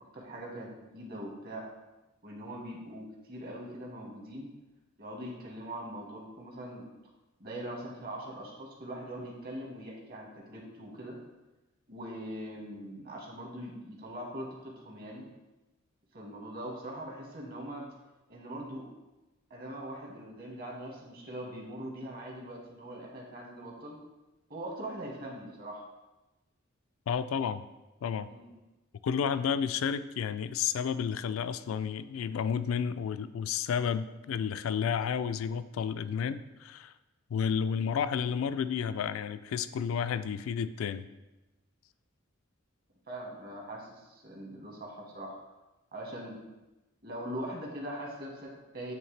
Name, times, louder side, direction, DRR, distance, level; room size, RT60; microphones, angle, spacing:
voice 1, 0.1-1.7 2.2-4.5 5.0-6.9 7.4-11.2 11.9-15.3 16.1-17.9 18.3-18.9 19.5-24.0 24.5-25.8 28.3-28.5 43.1-45.4 45.9-46.4 47.0-48.9, right 1 dB, 50° right, -1 dB, 1.3 m, -42 dB
voice 2, 27.1-27.6 28.0-28.3 29.0-36.9 37.3-41.1, left 7 dB, 85° left, 14 dB, 0.3 m, -31 dB
9.0 x 3.2 x 3.3 m, 1.1 s
head